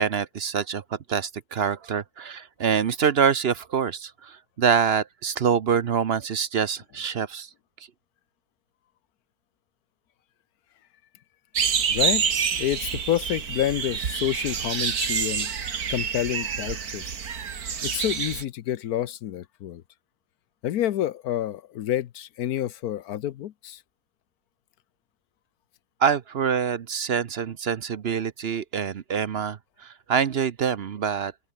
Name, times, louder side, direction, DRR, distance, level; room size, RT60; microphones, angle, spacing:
voice 1, 0.0-7.5 26.0-31.3, right 7 dB, 50° right, 0.9 m, -25 dB
sound 1, 11.6-18.4, right 7 dB, 85° right, 2.1 m, -27 dB
voice 2, 11.9-17.0 17.8-19.8 20.6-23.8, left 12 dB, 85° left, 1.3 m, -29 dB
open air
omnidirectional pair, 1.5 m